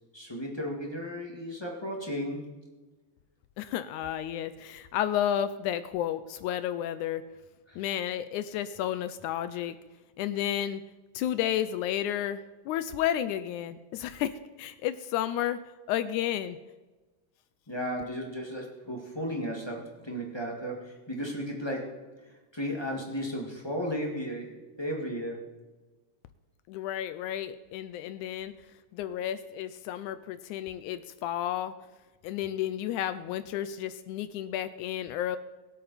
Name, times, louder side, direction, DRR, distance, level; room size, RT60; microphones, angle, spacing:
voice 1, 0.1-2.5 7.7-7.8 17.7-22.0 22.5-25.5, equal, 20° left, -1 dB, 0.6 m, -34 dB
voice 2, 3.6-7.2 7.8-9.8 10.2-10.8 11.1-15.6 15.9-16.6 26.7-28.5 28.9-31.7 32.2-35.4, left 11 dB, 85° left, 12 dB, 1.7 m, -32 dB
23.0 x 8.6 x 4.1 m, 1.2 s
omnidirectional pair, 4.0 m